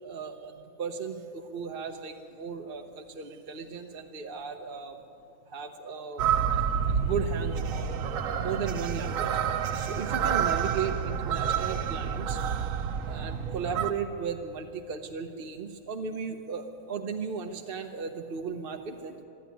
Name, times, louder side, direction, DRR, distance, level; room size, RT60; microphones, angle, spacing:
voice 1, 0.0-5.0 5.5-12.6 13.0-19.1, right 6 dB, 45° right, 4 dB, 0.9 m, -36 dB
sound 1, 6.2-13.9, right 7 dB, 70° right, 1.2 m, -29 dB
24.5 x 11.5 x 9.2 m, 2.8 s
omnidirectional pair, 1.5 m